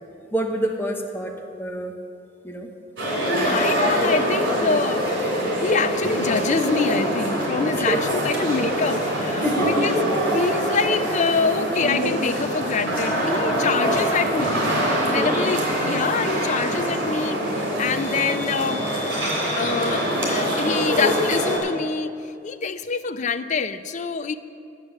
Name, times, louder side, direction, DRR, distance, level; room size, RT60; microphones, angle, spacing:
voice 1, 0.3-1.9 2.4-2.7 3.3-3.6 7.6-8.0 9.4-9.8 15.1-15.6, right 1 dB, 10° left, 2 dB, 0.9 m, -28 dB
sound 1, 3.0-21.6, equal, 70° right, 3.0 m, -24 dB
voice 2, 3.3-5.1 5.6-9.9 10.3-14.7 15.1-18.8 19.5-22.1 22.4-24.3, left 5 dB, 40° left, 12 dB, 0.4 m, -25 dB
9.6 x 7.6 x 6.4 m, 2.4 s
head